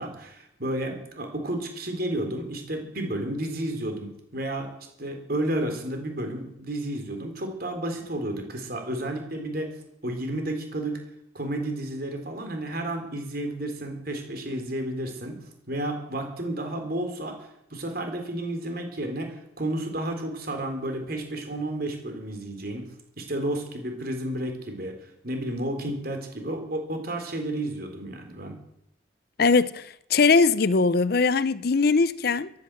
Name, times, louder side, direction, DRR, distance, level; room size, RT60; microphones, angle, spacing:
voice 1, 0.0-4.7 5.0-9.7 10.0-11.0 11.3-22.9 23.2-28.6, right 1 dB, 50° right, 3.7 m, -32 dB
voice 2, 29.4-32.5, left 4 dB, 50° left, 0.5 m, -21 dB
14.5 x 10.5 x 7.6 m
head